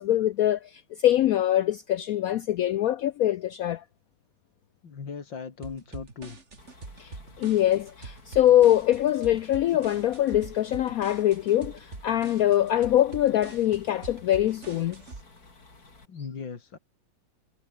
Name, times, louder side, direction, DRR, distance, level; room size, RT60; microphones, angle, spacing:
voice 1, 0.0-3.8 7.0-15.0, left 12 dB, 70° left, 0.8 m, -23 dB
voice 2, 4.8-6.4 9.7-9.8 16.1-16.8, left 5 dB, 90° left, 3.3 m, -38 dB
sound 1, 5.6-15.2, right 3 dB, 40° right, 2.9 m, -44 dB
sound 2, 6.6-16.1, left 3 dB, 55° left, 4.7 m, -54 dB
omnidirectional pair, 2.0 m